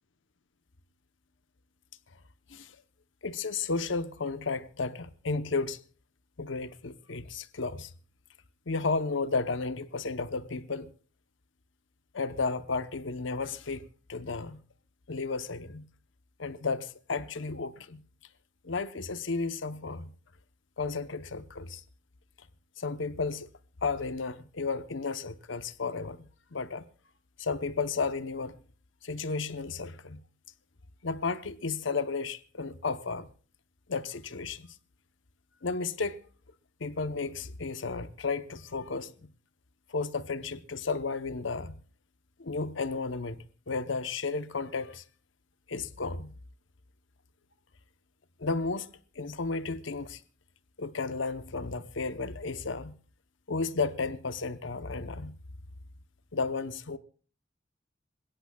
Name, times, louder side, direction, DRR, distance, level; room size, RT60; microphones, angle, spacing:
voice 1, 3.2-5.8 6.4-7.9 8.7-10.9 12.1-14.6 15.1-15.8 16.4-18.0 18.6-20.1 20.8-21.8 22.8-23.5 23.8-26.9 27.4-28.6 29.0-30.2 31.0-33.3 33.9-34.7 35.6-36.2 36.8-39.3 39.9-41.8 42.4-45.0 45.7-46.3 48.4-48.9 49.2-50.2 50.8-52.9 53.5-55.3 56.3-57.0, left 4 dB, 75° left, 0.9 m, -33 dB
27.0 x 17.0 x 2.3 m
head